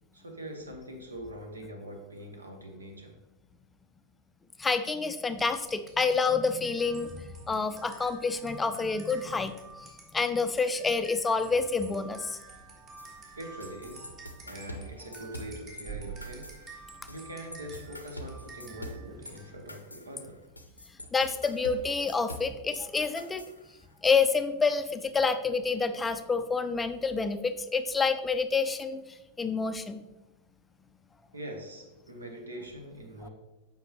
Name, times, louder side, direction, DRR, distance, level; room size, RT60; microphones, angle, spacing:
voice 1, 0.1-3.2 13.0-14.2 14.4-16.6 17.1-20.4 31.3-33.3, right 1 dB, 75° right, 3 dB, 1.1 m, -43 dB
voice 2, 4.6-9.5 10.1-12.4 21.1-23.5 24.0-29.0 29.4-30.0 33.2-33.3, left 4 dB, 15° left, 9 dB, 0.4 m, -28 dB
sound 1, 5.3-19.8, right 5 dB, 30° right, 1.5 m, -49 dB
sound 2, 13.0-15.9 16.2-17.2 17.5-22.8 23.2-24.1, equal, 85° left, 0.6 m, -45 dB
7.5 x 5.2 x 3.1 m, 1.0 s
figure-of-eight pair, 90°, 0 cm